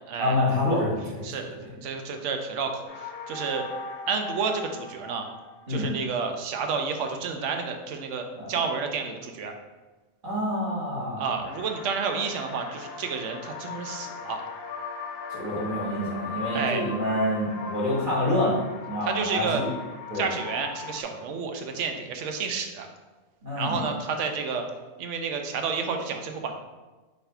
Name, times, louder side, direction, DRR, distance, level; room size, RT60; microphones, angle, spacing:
voice 1, 0.2-1.0 1.6-1.7 5.7-5.8 8.4-8.5 10.2-11.3 15.3-19.7 20.1-20.3 23.4-23.8, left 1 dB, 45° right, -6 dB, 1.5 m, -27 dB
voice 2, 1.2-3.7 4.1-5.3 5.7-9.5 11.2-14.4 16.5-16.8 19.0-19.6 20.1-22.9 23.6-24.6 25.0-26.5, right 5 dB, 90° right, 5 dB, 0.9 m, -30 dB
sound 1, 2.9-5.9 11.4-21.0, left 5 dB, 60° left, 0.7 m, -38 dB
4.1 x 2.6 x 4.3 m, 1.2 s
omnidirectional pair, 1.2 m